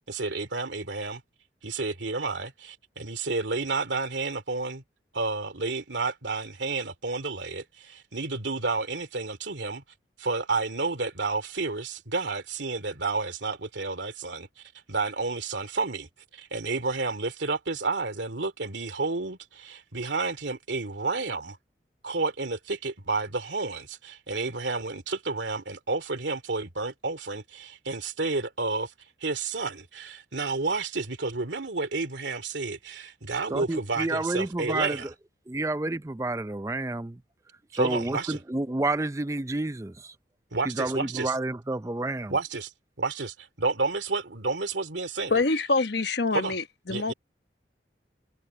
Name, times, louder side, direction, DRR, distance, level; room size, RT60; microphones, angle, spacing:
voice 1, 0.1-1.2 1.6-4.8 5.1-9.8 10.2-14.5 14.9-21.6 22.0-28.9 29.2-35.1 37.7-38.4 40.5-41.3 42.3-42.7 43.0-45.3 46.3-46.5 46.9-47.1, right 3 dB, 90° right, 2.7 m, -30 dB
voice 2, 33.5-35.1 35.5-37.2 37.7-40.1 40.6-42.3, right 2 dB, 15° right, 0.5 m, -30 dB
voice 3, 45.3-47.1, left 3 dB, 70° left, 1.1 m, -26 dB
head